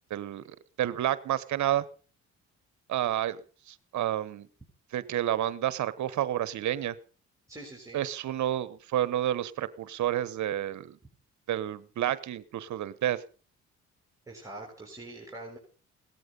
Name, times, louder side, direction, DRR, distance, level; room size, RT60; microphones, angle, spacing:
voice 1, 0.1-1.8 2.9-3.4 3.7-4.5 4.9-6.9 7.9-11.0 11.5-13.2, right 12 dB, 70° right, 16 dB, 1.1 m, -30 dB
voice 2, 7.5-8.0 14.3-15.6, right 2 dB, 10° right, -1 dB, 6.3 m, -44 dB
17.5 x 14.0 x 5.4 m, 0.38 s
cardioid pair, 90°, 30 cm